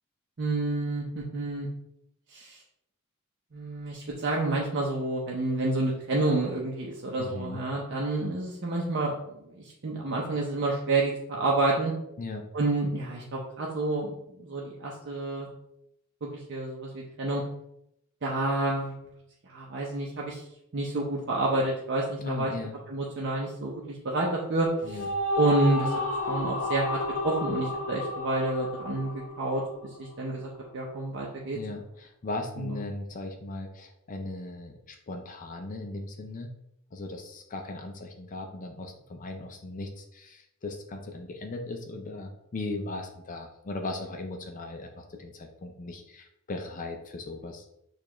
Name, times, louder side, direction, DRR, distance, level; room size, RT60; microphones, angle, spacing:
voice 1, 0.4-1.7 2.3-2.6 3.5-11.9 12.5-14.1 14.4-15.5 16.2-17.4 18.2-18.9 19.5-20.4 20.7-22.5 22.9-25.0 25.4-25.9 26.3-31.6 32.6-32.8, right 2 dB, 55° right, -3 dB, 0.7 m, -29 dB
voice 2, 7.2-7.6 12.2-12.5 22.2-22.8 24.8-25.1 31.5-36.5 36.9-47.7, left 2 dB, 35° left, 4 dB, 0.4 m, -38 dB
sound 1, 24.7-30.1, left 1 dB, 80° left, 0.6 m, -32 dB
6.6 x 2.4 x 3.0 m, 0.79 s
head